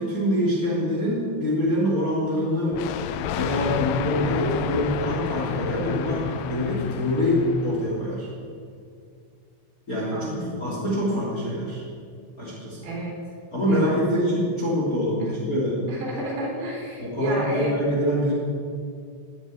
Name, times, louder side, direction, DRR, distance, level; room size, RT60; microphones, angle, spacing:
voice 1, 0.0-2.8 3.3-8.3 9.9-11.8 12.4-12.9 13.5-15.8 17.0-18.3, equal, 20° left, -5 dB, 2.9 m, -25 dB
Thunder, 2.7-8.1, left 9 dB, 85° left, 3.1 m, -30 dB
voice 2, 10.1-10.7 12.8-13.2 13.7-13.9 15.2-15.3 15.9-17.8, right 1 dB, 60° right, -2 dB, 5.3 m, -31 dB
18.0 x 8.2 x 8.8 m, 2.3 s
omnidirectional pair, 5.3 m